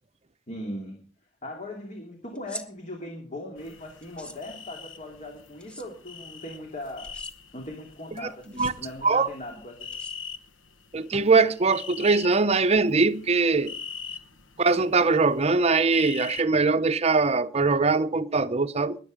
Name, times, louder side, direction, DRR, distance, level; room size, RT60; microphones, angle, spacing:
voice 1, 0.5-1.0 1.4-7.1 7.5-9.9, left 1 dB, 40° left, 2.7 m, -39 dB
sound 1, 2.3-2.7 4.0-4.4 5.6-5.9 7.0-7.3 8.4-8.7 9.9-10.5, equal, 5° left, 1.2 m, -42 dB
sound 2, 3.6-16.4, left 6 dB, 85° left, 1.2 m, -43 dB
voice 2, 10.9-13.7 14.6-19.0, right 4 dB, 35° right, 0.7 m, -22 dB
21.5 x 8.2 x 5.2 m
head